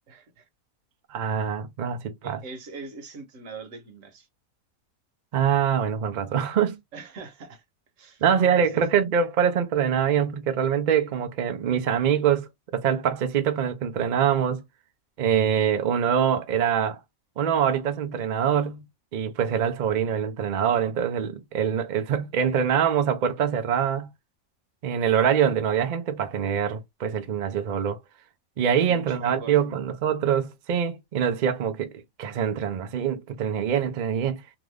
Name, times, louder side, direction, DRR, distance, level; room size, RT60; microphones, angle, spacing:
voice 1, 0.1-0.5 2.2-4.3 6.9-7.6 8.0-8.2 8.6-8.8 28.6-29.6, right 4 dB, 60° right, 1.3 m, -42 dB
voice 2, 1.1-2.4 5.3-6.8 8.2-14.6 15.2-17.0 17.4-18.8 19.1-24.1 24.8-28.0 28.6-31.9 32.2-34.4, right 8 dB, 80° right, 0.4 m, -24 dB
2.9 x 2.5 x 3.2 m
omnidirectional pair, 1.5 m